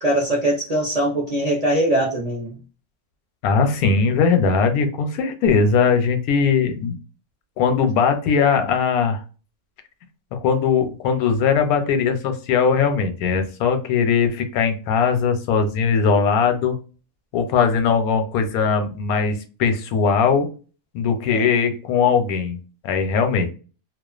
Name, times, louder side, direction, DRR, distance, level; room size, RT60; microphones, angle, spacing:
voice 1, 0.0-2.6 21.3-21.5, right 1 dB, 45° right, -3 dB, 0.5 m, -22 dB
voice 2, 3.4-7.0 7.6-9.2 10.3-16.7 17.3-20.5 20.9-22.6 22.8-23.5, left 6 dB, 90° left, 7 dB, 1.1 m, -20 dB
2.4 x 2.3 x 2.3 m, 0.35 s
omnidirectional pair, 1.5 m